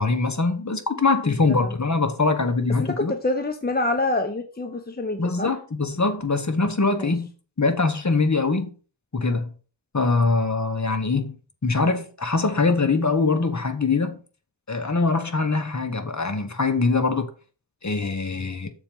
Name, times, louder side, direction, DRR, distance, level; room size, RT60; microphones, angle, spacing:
voice 1, 0.0-3.1 5.2-7.3 7.6-8.7 9.1-9.5 9.9-11.3 11.6-14.2 14.7-17.3 17.8-18.7, left 3 dB, 40° left, 1.3 m, -23 dB
voice 2, 1.3-1.7 2.8-5.5 7.0-7.1, left 2 dB, 20° left, 0.8 m, -27 dB
6.9 x 4.4 x 5.4 m
wide cardioid pair, 50°, 45 cm